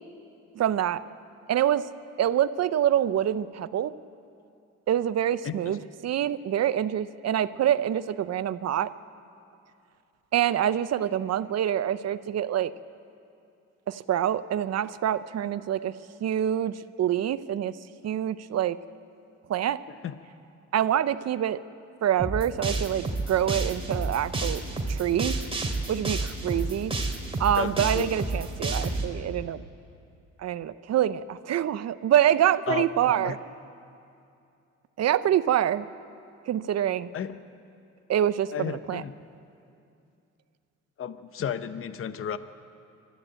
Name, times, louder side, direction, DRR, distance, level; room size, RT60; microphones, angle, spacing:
voice 1, 0.6-1.0 1.5-1.9 2.2-3.9 4.9-8.9 10.3-12.7 13.9-15.9 16.2-17.7 18.0-18.8 19.5-19.8 20.7-21.6 22.0-24.6 24.9-25.4 25.9-26.9 27.4-29.6 30.4-33.4 35.0-35.9 36.5-37.1 38.1-39.0, right 10 dB, 60° right, 15 dB, 0.7 m, -26 dB
sound 1, 22.2-29.0, right 2 dB, 20° right, 2.5 m, -29 dB
voice 2, 27.6-28.1 32.7-33.4 37.1-37.4 38.5-39.1 41.0-42.4, left 8 dB, 45° left, 12 dB, 0.8 m, -32 dB
23.5 x 13.5 x 9.0 m, 2.6 s
cardioid pair, 90°, 30 cm